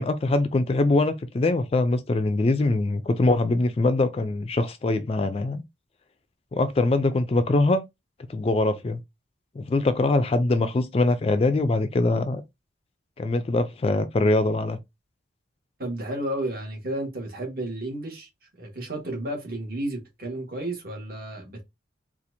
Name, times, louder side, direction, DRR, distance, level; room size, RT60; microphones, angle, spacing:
voice 1, 0.0-5.6 6.5-7.8 8.3-9.0 9.6-12.4 13.2-14.8, left 2 dB, 30° left, 0.3 m, -23 dB
voice 2, 15.8-21.6, right 1 dB, 50° right, 1.5 m, -32 dB
4.2 x 2.4 x 2.6 m
head